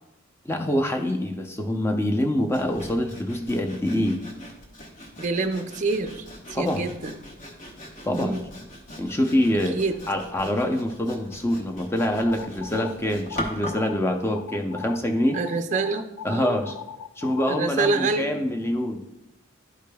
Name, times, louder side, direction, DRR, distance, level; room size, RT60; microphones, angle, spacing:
voice 1, 0.5-4.2 6.5-6.9 8.0-8.4 9.0-9.8 10.1-15.4 16.2-16.7 17.2-19.0, left 1 dB, 10° left, 4 dB, 0.5 m, -25 dB
Sawing, 2.5-13.9, equal, 40° left, 1.1 m, -41 dB
voice 2, 5.2-7.2 8.1-8.5 9.7-9.9 15.3-16.6 17.5-18.3, right 4 dB, 35° right, 6 dB, 0.4 m, -27 dB
sound 1, 12.0-12.9 13.3-14.0 14.3-15.0 15.3-18.1, left 8 dB, 70° left, 0.3 m, -39 dB
12.0 x 5.0 x 2.2 m, 0.92 s
head